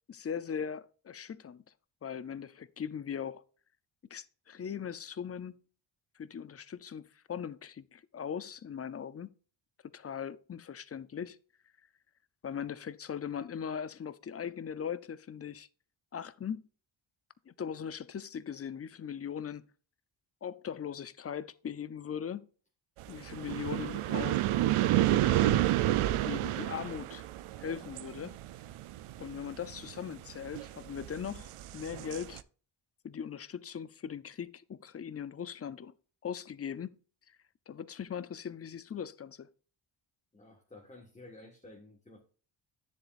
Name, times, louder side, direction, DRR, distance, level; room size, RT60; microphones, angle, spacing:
voice 1, 0.1-1.6 2.0-3.4 4.1-5.6 6.2-9.3 9.9-11.4 12.4-15.7 16.1-16.6 17.5-19.7 20.4-22.5 23.1-24.5 25.0-25.8 26.2-27.3 27.6-28.4 29.2-32.4 33.0-35.9 36.2-37.0 37.3-37.4 37.7-39.5, left 8 dB, 30° left, 0.5 m, -40 dB
sound 1, 23.0-32.4, right 14 dB, 85° right, 0.7 m, -30 dB
voice 2, 40.3-42.2, left 2 dB, 15° left, 1.6 m, -52 dB
10.0 x 7.5 x 2.5 m
wide cardioid pair, 145°, 49 cm